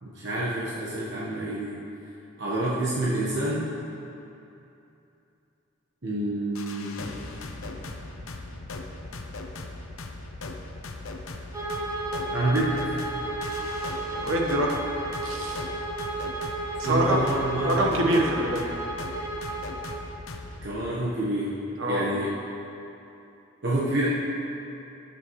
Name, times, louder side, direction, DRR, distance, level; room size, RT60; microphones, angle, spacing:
voice 1, 0.0-1.8 2.4-3.7 6.0-7.0 12.3-12.7 16.8-17.9 20.6-21.6 21.9-22.3 23.6-24.1, right 1 dB, 60° right, -8 dB, 1.2 m, -27 dB
sound 1, 6.5-20.7, left 2 dB, 90° left, 0.7 m, -39 dB
Bowed string instrument, 11.5-20.1, right 2 dB, 15° right, 1.0 m, -33 dB
voice 2, 14.1-14.8 15.2-15.6 16.8-18.7 21.8-22.1, right 1 dB, 80° right, -1 dB, 1.2 m, -25 dB
12.0 x 8.4 x 3.2 m, 2.8 s
head